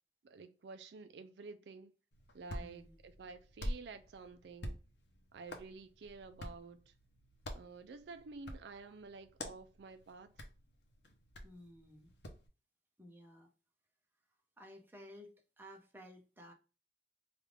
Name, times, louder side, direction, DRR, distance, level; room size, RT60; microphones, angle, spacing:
voice 1, 0.2-1.9 2.3-4.8 5.3-6.9 7.5-10.3, right 4 dB, 70° right, 0.4 m, -51 dB
Hands, 2.1-12.5, equal, 75° left, 0.7 m, -48 dB
voice 2, 2.6-3.0 11.4-12.1 13.0-13.5 14.6-16.5, equal, 10° right, 0.7 m, -55 dB
3.4 x 2.5 x 3.1 m
head